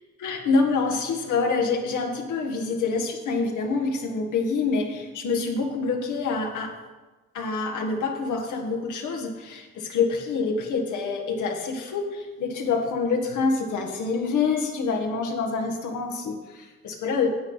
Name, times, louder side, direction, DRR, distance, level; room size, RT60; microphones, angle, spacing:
voice 1, 0.2-6.7 7.3-17.3, left 4 dB, 80° left, 1 dB, 1.7 m, -26 dB
9.7 x 8.0 x 5.6 m, 1.2 s
cardioid pair, 90°, 30 cm